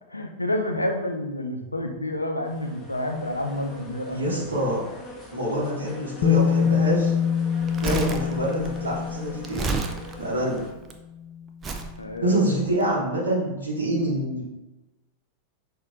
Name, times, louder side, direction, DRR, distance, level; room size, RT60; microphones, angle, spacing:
voice 1, 0.1-4.5 8.2-8.5 12.0-12.6, left 1 dB, 85° left, 3 dB, 0.5 m, -29 dB
sound 1, 2.4-10.7, left 1 dB, ahead, 1.0 m, -43 dB
voice 2, 4.1-4.9 5.3-7.1 7.8-9.8 10.2-10.6 12.2-14.4, right 1 dB, 70° right, -6 dB, 1.0 m, -26 dB
Bass guitar, 6.2-10.2 11.3-11.4, left 8 dB, 30° left, 0.4 m, -24 dB
Crumpling crinkling, 7.6-10.9 11.6-11.9 12.7-12.8, right 4 dB, 25° right, 0.4 m, -31 dB
5.9 x 2.6 x 2.5 m, 1.1 s
figure-of-eight pair, 90°, 0 cm